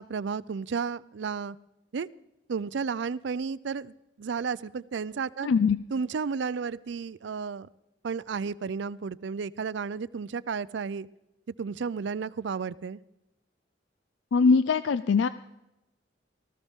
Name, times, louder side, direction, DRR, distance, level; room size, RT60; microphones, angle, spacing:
voice 1, 0.0-1.6 1.9-2.1 2.5-5.5 5.9-7.7 8.0-11.1 11.6-13.0, right 5 dB, 65° right, 0.4 m, -32 dB
voice 2, 5.4-5.8 14.3-15.3, left 5 dB, 75° left, 0.4 m, -22 dB
18.0 x 14.5 x 3.6 m
head